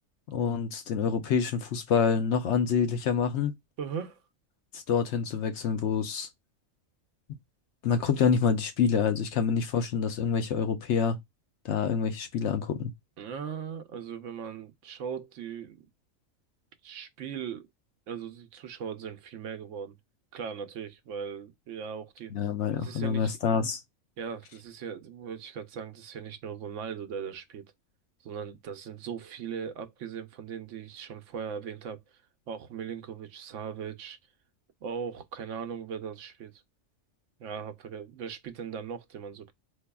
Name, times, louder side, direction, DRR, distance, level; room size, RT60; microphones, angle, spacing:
voice 1, 0.3-3.5 4.7-6.3 7.8-11.2 11.6-12.9 22.3-23.8, left 6 dB, 70° left, 0.9 m, -27 dB
voice 2, 3.8-4.2 13.2-15.8 16.8-17.7 18.1-20.0 20.3-22.3 22.7-23.3 24.2-27.6 28.2-32.0 32.5-34.2 34.8-36.6 37.4-39.5, right 7 dB, 75° right, 0.9 m, -39 dB
4.6 x 2.6 x 2.2 m
omnidirectional pair, 1.3 m